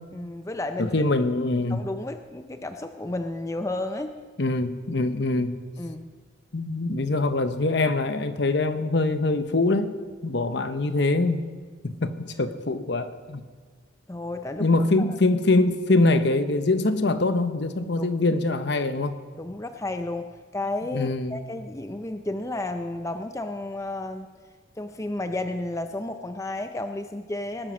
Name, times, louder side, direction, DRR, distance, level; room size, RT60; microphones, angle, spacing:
voice 1, 0.1-0.9 1.7-4.1 5.8-6.2 14.1-14.7 15.0-15.2 18.0-18.1 19.4-20.3 20.5-24.3 24.8-27.7, left 2 dB, 15° left, 7 dB, 0.5 m, -32 dB
voice 2, 0.8-1.8 4.4-5.6 6.5-10.0 10.2-11.5 11.8-13.4 14.6-19.1 20.9-21.4, left 2 dB, 55° left, 10 dB, 0.9 m, -23 dB
19.5 x 9.4 x 6.3 m, 1.5 s
head